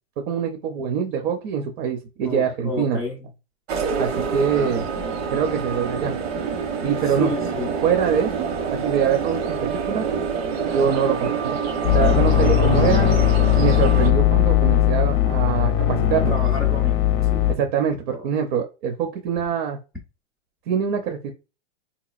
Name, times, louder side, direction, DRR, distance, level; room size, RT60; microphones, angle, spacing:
voice 1, 0.3-3.0 4.0-4.9 5.3-6.2 6.8-7.3 7.8-10.1 10.7-11.6 11.9-13.1 13.6-16.4 17.5-19.8 20.7-21.3, right 7 dB, 45° right, 4 dB, 0.6 m, -24 dB
voice 2, 2.2-3.3 4.5-4.7 7.2-7.7 12.3-13.1 16.3-17.0 17.3-17.5 18.1-18.3, left 2 dB, ahead, -5 dB, 0.3 m, -30 dB
sound 1, 3.7-14.1, right 6 dB, 75° right, 1.0 m, -27 dB
sound 2, 11.8-17.6, left 11 dB, 45° left, 0.6 m, -18 dB
3.6 x 2.9 x 2.4 m, 0.30 s
supercardioid pair, 155°, 32 cm